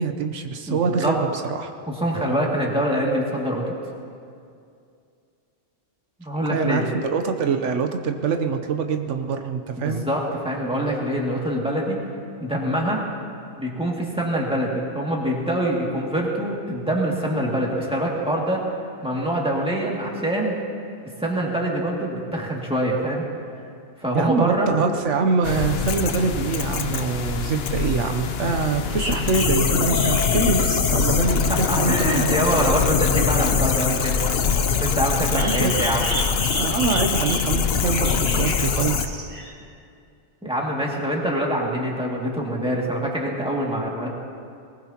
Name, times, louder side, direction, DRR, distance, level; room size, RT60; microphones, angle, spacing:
voice 1, 0.0-1.7 6.5-10.0 24.1-32.3 35.3-35.7 36.6-39.0, right 5 dB, 85° right, 6 dB, 1.2 m, -24 dB
voice 2, 0.7-1.1 1.9-3.6 6.2-6.8 9.8-12.0 12.4-13.0 13.6-18.6 19.0-20.5 21.2-23.2 24.0-24.7 31.5-34.2 34.8-36.1 40.4-44.1, right 1 dB, 5° right, -3 dB, 2.3 m, -24 dB
sound 1, 25.4-39.1, left 6 dB, 65° left, 0.9 m, -23 dB
sound 2, 28.9-31.2 35.3-37.6 37.9-39.5, right 1 dB, 35° right, 2.6 m, -32 dB
sound 3, 29.8-36.7 37.1-37.6, left 5 dB, 15° left, 1.0 m, -35 dB
20.5 x 19.5 x 2.9 m, 2.4 s
omnidirectional pair, 1.2 m